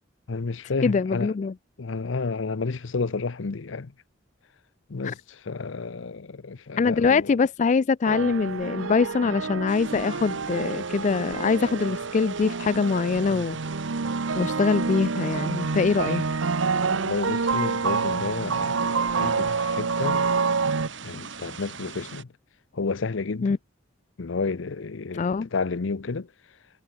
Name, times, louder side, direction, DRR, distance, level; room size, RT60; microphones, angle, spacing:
voice 1, 0.3-1.3 1.8-3.9 4.9-7.4 16.1-16.3 16.9-20.3 21.0-22.3 22.7-23.6 24.2-26.3, left 4 dB, 75° left, 0.7 m, -31 dB
voice 2, 0.8-1.5 6.8-13.6 14.3-16.2 23.4-23.6 25.1-25.5, left 5 dB, 40° left, 0.3 m, -23 dB
sound 1, 8.0-20.9, right 4 dB, 90° right, 0.9 m, -27 dB
sound 2, 9.7-22.2, right 6 dB, 65° right, 3.0 m, -42 dB
head